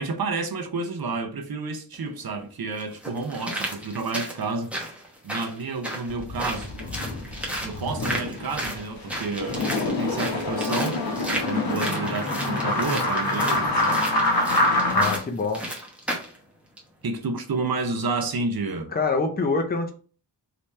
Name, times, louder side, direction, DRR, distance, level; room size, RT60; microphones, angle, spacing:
voice 1, 0.0-4.7 5.2-6.7 7.6-14.1 17.0-18.9, right 3 dB, 55° right, 0.7 m, -30 dB
sound 1, 1.9-2.0 2.8-16.4 16.8-16.9, right 1 dB, 5° right, 0.8 m, -34 dB
sound 2, 6.1-15.2, left 2 dB, 55° left, 1.0 m, -26 dB
voice 2, 14.9-15.7 18.9-19.9, left 4 dB, 25° left, 0.5 m, -25 dB
3.3 x 2.9 x 3.1 m
wide cardioid pair, 120°, 42 cm